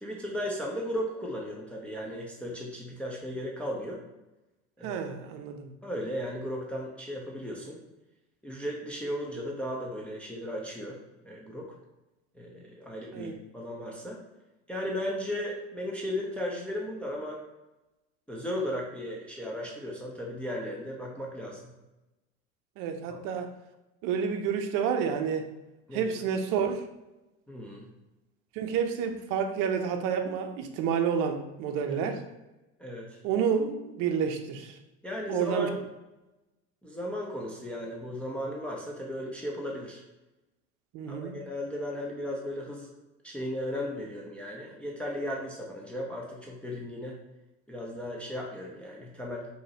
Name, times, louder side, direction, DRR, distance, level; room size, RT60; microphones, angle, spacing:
voice 1, 0.0-4.0 4.8-5.0 5.8-7.8 8.4-11.7 12.3-14.2 14.7-17.4 18.3-21.7 23.1-23.2 25.9-26.1 27.5-27.9 31.9-32.1 32.8-33.2 35.0-35.8 36.8-40.0 41.1-42.9 43.2-47.2 47.7-49.5, equal, 5° left, -3 dB, 0.8 m, -36 dB
voice 2, 4.8-5.8 13.1-13.3 22.8-23.5 24.0-25.5 25.9-26.9 28.5-32.2 33.2-34.8 35.3-35.7 40.9-41.4, right 7 dB, 60° right, 6 dB, 0.7 m, -29 dB
4.8 x 2.8 x 2.8 m, 1.0 s
hypercardioid pair, 85°, 37 cm